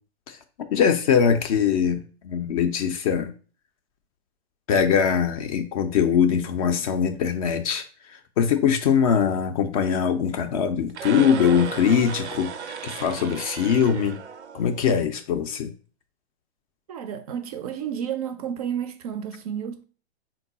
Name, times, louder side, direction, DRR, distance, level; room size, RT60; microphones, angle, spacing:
voice 1, 0.7-3.3 4.7-7.8 8.4-14.2 14.5-15.7, left 7 dB, 35° left, 0.4 m, -22 dB
sound 1, 10.9-15.1, right 7 dB, 85° right, 0.5 m, -35 dB
voice 2, 16.9-19.8, right 9 dB, 35° right, 0.4 m, -31 dB
3.7 x 2.3 x 3.9 m
hypercardioid pair, 120°, 33 cm